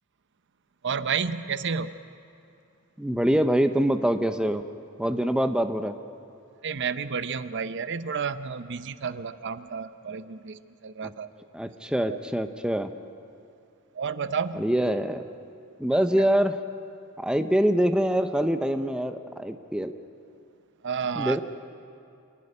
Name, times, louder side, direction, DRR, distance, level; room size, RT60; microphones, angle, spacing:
voice 1, 0.8-1.9 6.6-11.5 12.1-12.2 13.9-14.6 16.2-16.3 20.8-21.4, right 6 dB, 55° right, 12 dB, 0.7 m, -31 dB
voice 2, 3.0-4.6 5.0-5.9 11.0-11.1 11.5-12.9 14.5-15.3 15.8-16.6 17.2-19.9 21.2-21.4, equal, 5° right, 8 dB, 0.7 m, -24 dB
26.5 x 12.5 x 9.9 m, 2.6 s
head